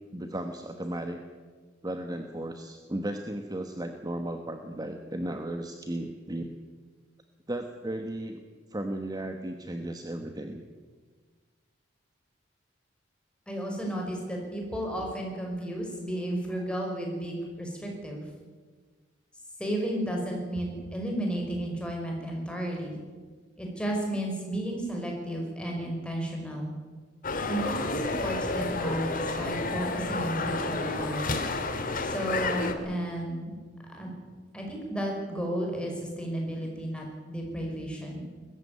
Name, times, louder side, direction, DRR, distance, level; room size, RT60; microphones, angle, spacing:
voice 1, 0.1-1.2 1.8-6.5 7.5-8.4 8.7-10.6, right 1 dB, 20° right, 5 dB, 1.1 m, -35 dB
voice 2, 13.5-18.3 19.6-22.9 23.6-26.7 27.5-31.3 32.0-33.6 33.9-34.1 34.5-38.2, right 1 dB, 5° left, 0 dB, 5.3 m, -33 dB
sound 1, 27.2-32.7, left 3 dB, 50° left, 2.0 m, -30 dB
21.0 x 14.5 x 9.5 m, 1.5 s
head